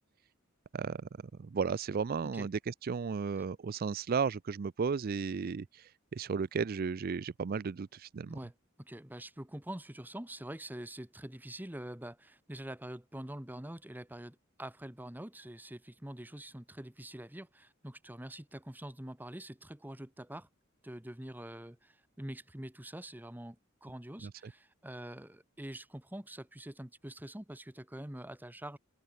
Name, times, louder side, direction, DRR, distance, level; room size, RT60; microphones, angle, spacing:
voice 1, 0.7-1.1 1.4-8.4 24.2-24.5, right 5 dB, 45° right, 0.4 m, -34 dB
voice 2, 8.3-20.5 20.8-28.8, right 1 dB, 10° right, 1.1 m, -45 dB
open air
head